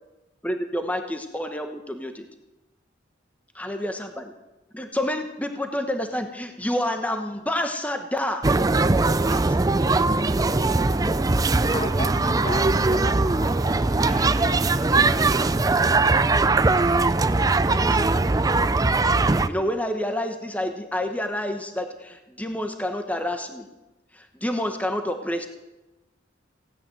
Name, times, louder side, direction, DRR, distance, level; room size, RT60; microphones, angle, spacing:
voice 1, 0.4-2.3 3.6-4.3 4.7-8.4 8.9-9.4 12.2-12.4 17.7-18.3 19.3-23.7 24.1-25.5, left 1 dB, 10° left, 1.0 m, -29 dB
sound 1, 8.4-19.5, right 3 dB, 20° right, 0.4 m, -21 dB
voice 2, 11.4-14.4, left 2 dB, 35° left, 1.4 m, -36 dB
voice 3, 14.0-16.0, right 4 dB, 40° right, 2.2 m, -40 dB
16.5 x 9.4 x 9.2 m
head